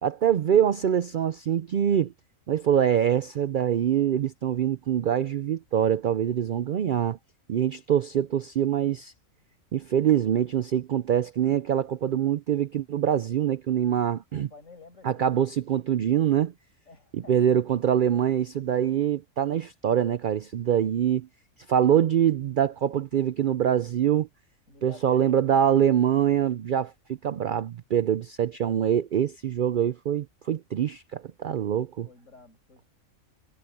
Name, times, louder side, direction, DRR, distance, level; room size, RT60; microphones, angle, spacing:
voice 1, 0.0-2.1 2.5-7.2 7.5-9.1 9.7-14.5 15.0-16.5 17.1-21.3 21.7-24.3 24.8-32.1, right 9 dB, 70° right, 0.4 m, -24 dB
voice 2, 14.3-15.2 16.8-17.9 24.7-25.7 31.4-31.7 32.0-32.9, left 3 dB, 65° left, 5.8 m, -51 dB
omnidirectional pair, 1.4 m